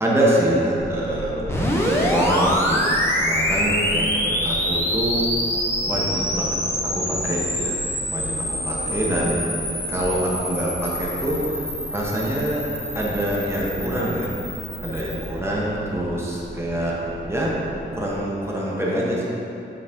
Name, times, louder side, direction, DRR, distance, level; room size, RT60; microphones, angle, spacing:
voice 1, 0.0-5.3 5.9-6.6 6.8-7.8 8.1-11.6 11.9-12.7 12.9-14.3 14.8-16.9 17.3-17.5 17.9-19.3, right 1 dB, 15° right, -5 dB, 1.0 m, -25 dB
sound 1, 0.7-18.2, right 1 dB, 90° right, 1.1 m, -37 dB
sound 2, 1.5-15.3, equal, 15° left, 0.8 m, -26 dB
9.1 x 4.1 x 3.6 m, 3.0 s
wide cardioid pair, 150°, 19 cm